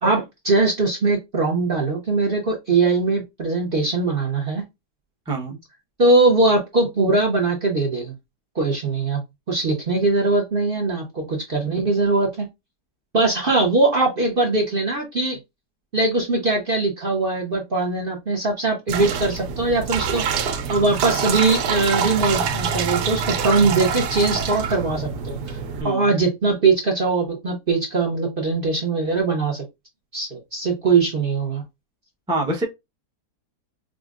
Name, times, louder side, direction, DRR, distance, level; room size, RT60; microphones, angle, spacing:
voice 1, 0.0-4.6 6.0-8.1 8.5-9.2 9.5-12.5 13.1-15.4 15.9-20.2 20.7-25.6 25.8-29.6 30.1-31.6, right 3 dB, 45° right, 0.7 m, -21 dB
voice 2, 5.3-5.6 25.8-26.1 32.3-32.6, right 2 dB, 5° right, 0.4 m, -25 dB
sound 1, 18.9-25.8, right 6 dB, 80° right, 1.2 m, -25 dB
5.1 x 2.1 x 2.4 m
omnidirectional pair, 1.8 m